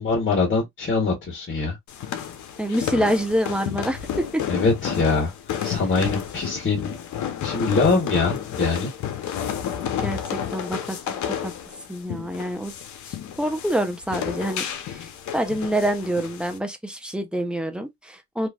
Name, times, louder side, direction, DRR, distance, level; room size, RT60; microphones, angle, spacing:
voice 1, 0.0-1.8 4.5-5.3 5.6-6.9 7.4-8.9, left 3 dB, 40° left, 1.6 m, -23 dB
sound 1, 1.9-16.6, left 9 dB, 70° left, 0.7 m, -31 dB
voice 2, 2.6-4.0 4.3-4.4 10.0-11.0 11.3-11.5 11.9-12.7 13.1-18.5, equal, 5° right, 0.7 m, -26 dB
3.0 x 2.6 x 2.3 m
cardioid pair, 90°, 30 cm